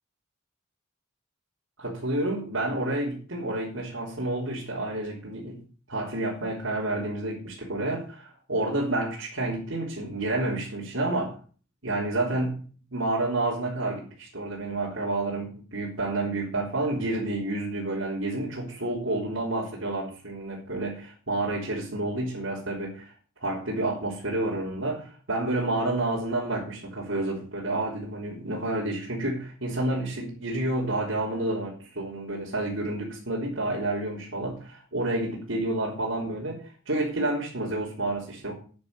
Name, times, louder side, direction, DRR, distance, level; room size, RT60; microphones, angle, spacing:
voice 1, 1.8-5.6 5.9-11.4 11.8-12.6 12.9-23.1 23.4-25.0 25.3-38.5, right 2 dB, 70° right, -5 dB, 4.0 m, -29 dB
9.7 x 9.4 x 6.7 m, 0.40 s
head